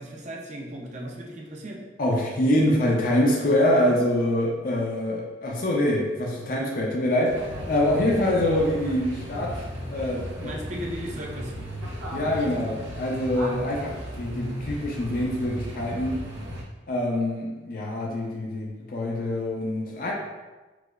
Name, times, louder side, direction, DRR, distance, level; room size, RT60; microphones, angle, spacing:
voice 1, 0.0-1.8 10.4-11.5, equal, 40° right, -1 dB, 0.5 m, -36 dB
voice 2, 2.0-9.6 9.9-10.6 12.1-16.2 16.9-20.1, left 1 dB, 50° left, -2 dB, 0.5 m, -25 dB
sound 1, 7.3-16.6, equal, 80° right, 0.7 m, -35 dB
4.7 x 2.0 x 2.3 m, 1.2 s
head